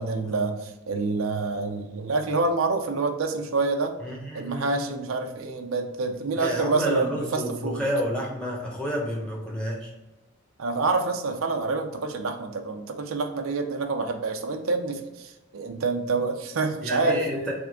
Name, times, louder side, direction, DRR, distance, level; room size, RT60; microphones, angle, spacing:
voice 1, 0.0-4.0 4.3-7.8 10.6-17.5, right 3 dB, 80° right, 5 dB, 0.6 m, -27 dB
voice 2, 4.0-4.9 6.4-9.9 16.8-17.5, equal, 5° left, -2 dB, 1.0 m, -30 dB
3.6 x 3.5 x 3.6 m, 1.1 s
head